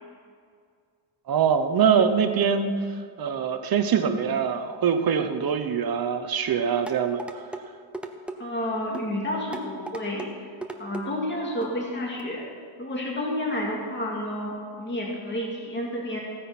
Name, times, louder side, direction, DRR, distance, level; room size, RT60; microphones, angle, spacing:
voice 1, 1.3-2.7 3.2-7.2, right 7 dB, 45° right, 8 dB, 1.0 m, -23 dB
sound 1, 6.9-7.6 7.9-8.4 8.9-9.1 9.5-10.3 10.6-11.1 11.6-11.8 12.2-12.3, right 2 dB, ahead, 0.6 m, -36 dB
voice 2, 8.4-10.3 10.8-12.4 12.8-16.2, left 1 dB, 20° left, -2 dB, 2.3 m, -30 dB
16.0 x 9.7 x 6.0 m, 2.2 s
wide cardioid pair, 180°, 49 cm